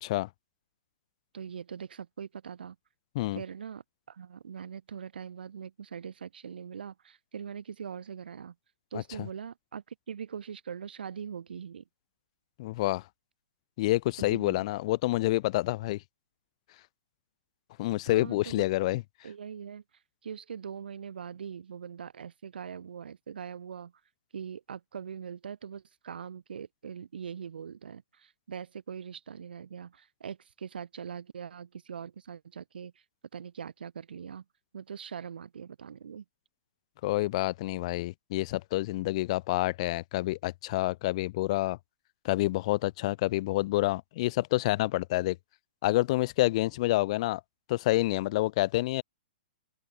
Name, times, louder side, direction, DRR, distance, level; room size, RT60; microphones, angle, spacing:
voice 1, 1.3-2.8 3.3-8.5 8.9-11.8 14.2-14.7 18.1-18.6 19.2-19.8 20.2-23.9 24.3-33.0 33.3-34.4 34.7-36.2, right 7 dB, 80° right, 4.4 m, -42 dB
voice 2, 12.6-13.0 13.8-16.0 17.8-19.0 37.0-41.8 42.2-45.4 45.8-47.4 47.7-49.0, left 18 dB, 40° left, 1.0 m, -28 dB
open air
hypercardioid pair, 160°, 5 cm